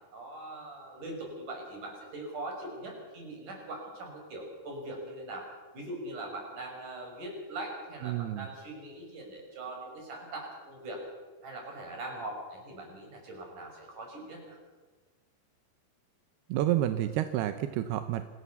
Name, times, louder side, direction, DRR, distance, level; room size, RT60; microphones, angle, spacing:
voice 1, 0.1-5.5 5.7-11.0 11.4-14.6, right 2 dB, 45° right, 1 dB, 7.3 m, -41 dB
voice 2, 8.0-8.5 16.5-18.2, right 13 dB, 75° right, 9 dB, 2.6 m, -29 dB
26.0 x 19.0 x 7.1 m, 1.3 s
omnidirectional pair, 5.3 m